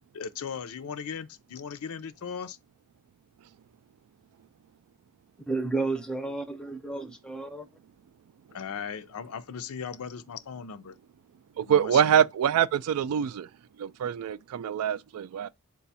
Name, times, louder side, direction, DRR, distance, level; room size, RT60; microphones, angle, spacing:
voice 1, 0.1-2.6 8.5-11.0 11.6-12.1, left 6 dB, 80° left, 0.5 m, -38 dB
voice 2, 5.5-7.7, right 3 dB, 5° left, 0.5 m, -31 dB
voice 3, 11.6-13.5 13.8-15.5, right 8 dB, 85° right, 0.3 m, -25 dB
4.8 x 2.3 x 4.0 m
head